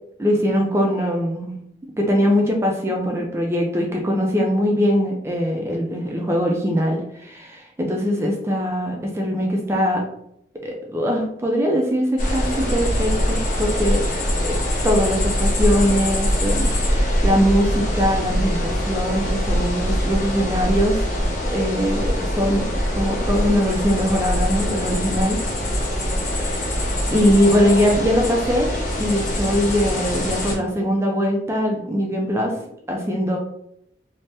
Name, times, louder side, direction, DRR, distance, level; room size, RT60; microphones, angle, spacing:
voice 1, 0.2-1.6 2.0-10.0 10.6-14.0 14.4-14.6 14.8-21.0 21.5-22.7 23.0-25.4 26.3-26.8 27.1-28.7 29.0-32.5 32.9-33.4, equal, 15° right, 0 dB, 0.3 m, -21 dB
sound 1, 12.2-30.5, equal, 40° left, 0.8 m, -23 dB
2.7 x 2.0 x 3.3 m, 0.76 s
head